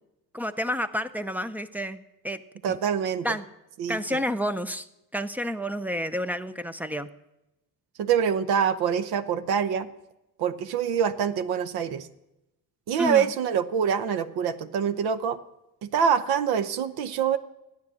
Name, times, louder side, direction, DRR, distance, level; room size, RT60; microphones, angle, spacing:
voice 1, 0.3-2.4 3.2-3.5 3.9-4.9 5.1-7.1 13.0-13.3, equal, 5° right, 13 dB, 0.4 m, -30 dB
voice 2, 2.6-3.4 3.8-4.2 8.0-9.9 10.4-12.1 12.9-15.4 15.8-17.4, right 7 dB, 75° right, 12 dB, 0.8 m, -25 dB
13.0 x 9.6 x 7.5 m, 0.92 s
cardioid pair, 130°, 38 cm